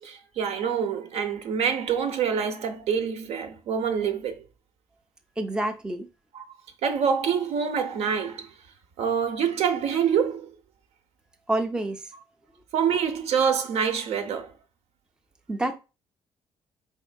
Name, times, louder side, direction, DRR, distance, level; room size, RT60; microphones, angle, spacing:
voice 1, 0.0-4.4 6.3-6.4 6.8-8.5 9.0-10.5 12.7-14.5, right 7 dB, 70° right, 0.7 m, -26 dB
voice 2, 5.4-6.1 11.5-12.0 15.5-15.8, right 1 dB, 5° right, 0.4 m, -27 dB
4.3 x 3.6 x 2.2 m
cardioid pair, 135°, 11 cm